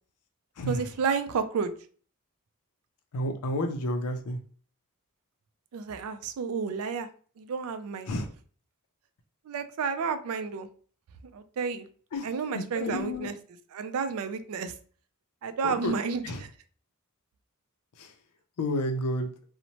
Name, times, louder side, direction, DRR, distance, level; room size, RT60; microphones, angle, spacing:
voice 1, 0.7-1.7 5.7-7.1 7.4-8.1 9.5-10.7 11.3-11.9 12.2-13.4 13.7-14.7 15.4-16.5, right 5 dB, 70° right, 10 dB, 0.4 m, -31 dB
voice 2, 3.1-4.4 8.1-8.3 12.1-12.3 12.5-13.3 15.6-15.9 16.2-16.4 18.0-18.1 18.6-19.3, left 1 dB, 80° left, 6 dB, 0.4 m, -30 dB
2.8 x 2.0 x 2.9 m, 0.43 s
head